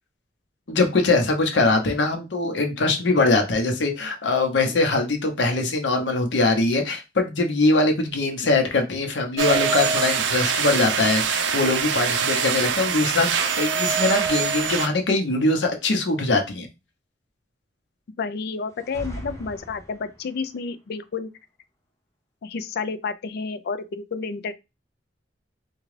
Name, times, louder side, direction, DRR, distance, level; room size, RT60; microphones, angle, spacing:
voice 1, 0.7-16.7, left 3 dB, 80° left, 0.8 m, -22 dB
sound 1, 9.4-14.9, right 6 dB, 80° right, 0.5 m, -24 dB
voice 2, 18.2-21.3 22.4-24.5, left 4 dB, 60° left, 0.4 m, -30 dB
sound 2, 18.7-20.4, equal, 15° left, 0.7 m, -39 dB
3.6 x 2.3 x 3.2 m
head